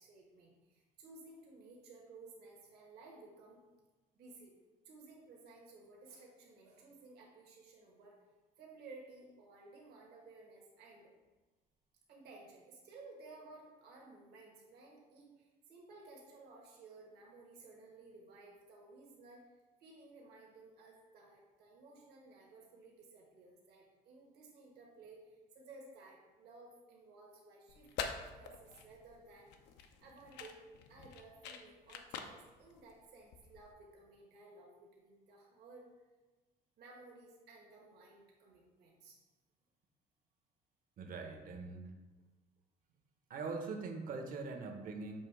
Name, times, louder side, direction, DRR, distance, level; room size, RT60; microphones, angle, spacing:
voice 1, 0.0-3.6 4.1-4.5 4.8-8.2 8.6-11.1 12.1-19.4 19.8-29.5 29.8-35.8 36.8-39.2, right 3 dB, 70° right, -2 dB, 1.4 m, -57 dB
sound 1, 27.7-33.7, left 6 dB, 90° left, 0.6 m, -47 dB
voice 2, 41.0-41.9 43.3-45.2, right 4 dB, 55° right, 4 dB, 0.9 m, -42 dB
7.3 x 2.9 x 4.7 m, 1.2 s
cardioid pair, 110°, 17 cm